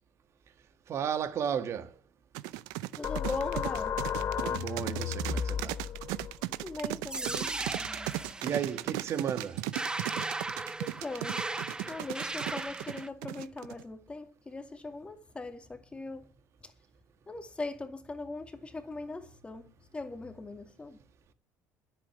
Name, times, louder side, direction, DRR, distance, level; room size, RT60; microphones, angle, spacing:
voice 1, 0.9-2.0 4.4-5.8 8.4-9.6, right 8 dB, 50° right, 1.6 m, -34 dB
sound 1, 2.3-13.8, right 18 dB, 80° right, 0.6 m, -36 dB
sound 2, 3.0-8.3, left 8 dB, 45° left, 1.3 m, -35 dB
voice 2, 3.0-3.9 6.6-7.5 10.8-11.4 11.9-16.3 16.6-16.7 17.3-21.0, left 3 dB, 20° left, 2.2 m, -40 dB
sound 3, 7.1-13.1, right 2 dB, 15° right, 0.8 m, -37 dB
10.0 x 8.2 x 9.5 m
supercardioid pair, 90°, 6 cm